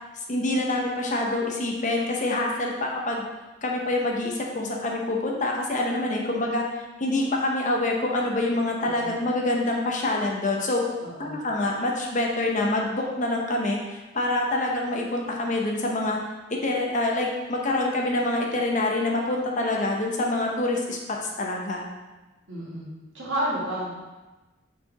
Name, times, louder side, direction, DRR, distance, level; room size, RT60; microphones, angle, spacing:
voice 1, 0.3-3.2 3.6-6.6 7.0-10.9 11.2-16.2 16.5-21.0 21.4-21.8, left 2 dB, 40° left, 0 dB, 0.8 m, -26 dB
voice 2, 11.0-11.4 22.5-22.9 23.1-23.9, right 1 dB, 70° right, -7 dB, 2.0 m, -30 dB
5.7 x 4.7 x 3.5 m, 1.1 s
head